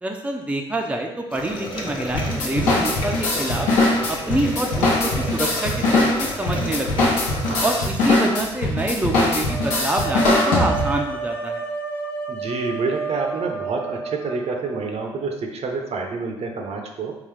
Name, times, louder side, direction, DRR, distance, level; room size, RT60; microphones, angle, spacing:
voice 1, 0.0-3.7 4.1-7.2 7.6-11.6, right 1 dB, 10° right, 2 dB, 0.5 m, -26 dB
sound 1, 1.3-7.8, left 1 dB, 35° left, 0.9 m, -33 dB
sound 2, 2.1-11.1, left 2 dB, 80° left, 0.8 m, -21 dB
sound 3, 9.5-15.3, right 4 dB, 15° left, 0.9 m, -31 dB
voice 2, 12.3-17.1, right 4 dB, 55° right, 3 dB, 0.6 m, -28 dB
3.8 x 2.4 x 3.2 m, 0.94 s
hypercardioid pair, 55°, 13 cm